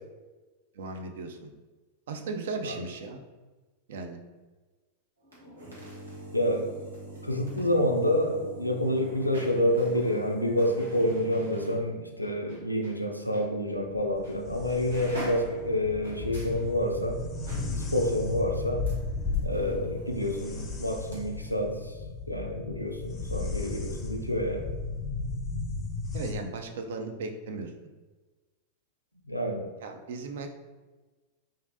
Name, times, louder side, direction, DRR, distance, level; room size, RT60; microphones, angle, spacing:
voice 1, 0.7-1.5 2.1-3.2 3.9-4.2 19.5-19.8 26.1-27.7 29.8-30.5, right 3 dB, 60° right, 5 dB, 0.3 m, -36 dB
sound 1, 5.2-13.0 13.3-13.5 14.2-14.4 14.7-21.2 21.4-21.5, equal, 75° right, 0.9 m, -44 dB
voice 2, 6.3-6.7 7.2-17.2 17.8-18.8 19.4-22.0 22.3-24.7 29.3-29.7, left 1 dB, 85° left, 2 dB, 0.3 m, -28 dB
sound 2, 13.8-26.3, left 3 dB, 25° left, 0.5 m, -35 dB
3.1 x 2.5 x 2.6 m, 1.3 s
figure-of-eight pair, 90°, 0 cm